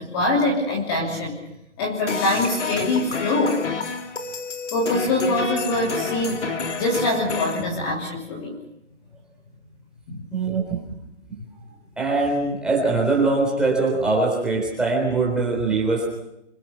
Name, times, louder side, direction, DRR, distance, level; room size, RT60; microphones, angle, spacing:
voice 1, 0.0-1.4 1.8-3.6 4.7-6.4 6.8-8.6 10.1-10.2, left 2 dB, 20° left, -1 dB, 3.0 m, -23 dB
sound 1, 2.1-7.6, left 4 dB, 75° left, 3.3 m, -29 dB
voice 2, 10.3-10.8 12.0-16.1, right 3 dB, ahead, -2 dB, 3.8 m, -22 dB
26.5 x 24.5 x 5.9 m, 0.83 s
hypercardioid pair, 165°, 36 cm